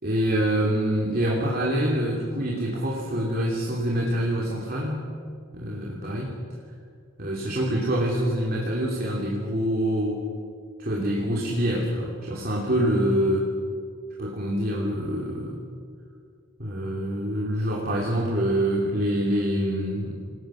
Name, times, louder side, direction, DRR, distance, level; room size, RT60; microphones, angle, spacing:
voice 1, 0.0-5.0 5.5-6.4 7.2-10.2 10.8-13.5 14.2-15.6 16.6-20.1, equal, 45° right, -3 dB, 3.1 m, -25 dB
29.5 x 19.5 x 6.4 m, 2.2 s
head